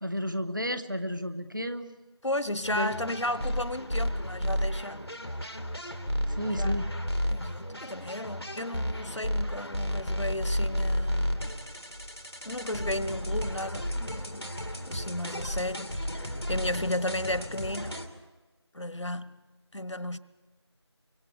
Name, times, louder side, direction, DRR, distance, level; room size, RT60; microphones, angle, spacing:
voice 1, 0.0-1.9 2.7-2.9 6.4-6.9, equal, 45° right, 1.2 m, -32 dB
voice 2, 2.2-5.0 6.5-6.7 7.3-11.5 12.4-14.5 14.9-18.0 18.7-19.4 19.7-20.2, left 1 dB, 85° left, 1.2 m, -34 dB
sound 1, 2.6-18.1, equal, 60° left, 2.5 m, -32 dB
28.5 x 24.5 x 4.8 m
figure-of-eight pair, 180°, 15 cm